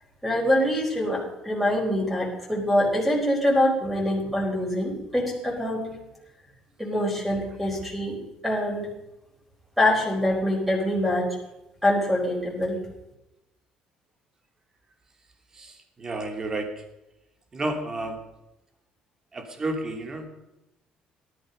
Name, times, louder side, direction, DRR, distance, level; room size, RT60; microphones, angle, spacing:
voice 1, 0.2-5.9 6.8-8.2 8.4-8.9 9.8-11.4 11.8-12.8, left 1 dB, ahead, -2 dB, 4.8 m, -24 dB
voice 2, 15.5-16.7 17.5-18.2 19.3-20.3, right 2 dB, 25° right, 4 dB, 2.8 m, -31 dB
18.0 x 12.5 x 5.4 m, 0.91 s
cardioid pair, 140°, 2 cm